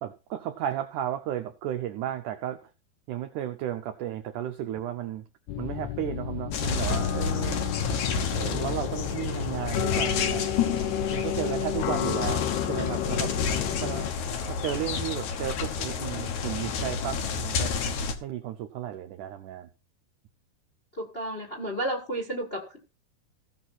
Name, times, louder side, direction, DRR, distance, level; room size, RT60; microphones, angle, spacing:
voice 1, 0.0-2.7 3.1-5.2 5.6-7.6 8.4-13.3 13.8-14.1 14.5-17.7 18.2-19.7, right 11 dB, 85° right, 7 dB, 1.8 m, -34 dB
sound 1, 5.5-14.1, left 11 dB, 90° left, 2.8 m, -31 dB
sound 2, 6.5-18.1, left 6 dB, 65° left, 2.1 m, -30 dB
voice 2, 21.0-22.8, right 1 dB, 25° left, -1 dB, 1.2 m, -32 dB
16.5 x 6.2 x 4.2 m, 0.32 s
omnidirectional pair, 4.5 m